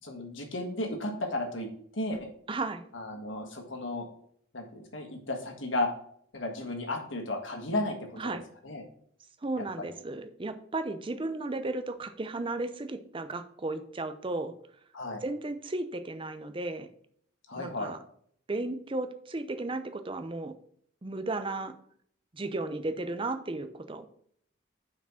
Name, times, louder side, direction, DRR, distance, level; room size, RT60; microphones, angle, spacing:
voice 1, 0.0-1.7 2.0-2.2 2.9-4.1 4.5-5.9 6.3-8.4 8.6-8.8 9.8-9.9 14.9-15.2 17.5-17.9, left 2 dB, 70° left, 3 dB, 1.6 m, -34 dB
voice 2, 2.5-2.9 8.2-8.4 9.4-14.5 15.2-16.9 17.6-18.0 18.5-20.5 21.0-21.7 22.3-24.1, right 2 dB, 25° right, 10 dB, 0.5 m, -34 dB
5.8 x 4.8 x 5.8 m, 0.64 s
head